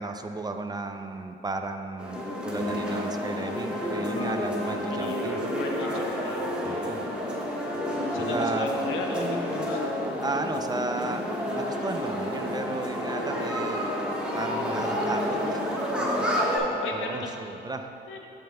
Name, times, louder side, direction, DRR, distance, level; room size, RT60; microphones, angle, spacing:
voice 1, 0.0-5.4 6.6-7.0 8.1-8.7 10.2-11.2 11.5-13.9 14.3-15.6 16.0-16.4 16.9-17.9, right 3 dB, 20° right, 6 dB, 0.4 m, -34 dB
sound 1, 2.0-16.6, equal, 5° right, 1.3 m, -29 dB
voice 2, 2.1-2.8 4.9-5.2 5.5-7.0 8.1-10.1 16.3-17.4 18.1-18.3, left 3 dB, 85° left, 2 dB, 0.8 m, -37 dB
13.0 x 5.4 x 2.2 m, 2.8 s
cardioid pair, 90°, 20 cm